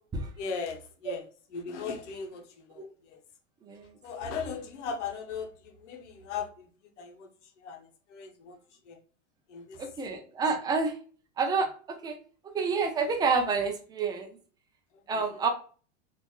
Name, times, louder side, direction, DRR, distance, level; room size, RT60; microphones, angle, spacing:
voice 1, 0.4-2.9 3.1-3.2 4.0-6.7 7.0-7.3 7.6-8.6 8.9-9.0 9.5-9.9 15.1-15.4, left 5 dB, 80° left, 4 dB, 0.9 m, -38 dB
voice 2, 9.8-10.9 11.4-12.2 12.5-14.4 15.1-15.5, right 4 dB, 10° right, 5 dB, 0.4 m, -29 dB
3.5 x 2.5 x 2.3 m, 0.41 s
hypercardioid pair, 120°, 35 cm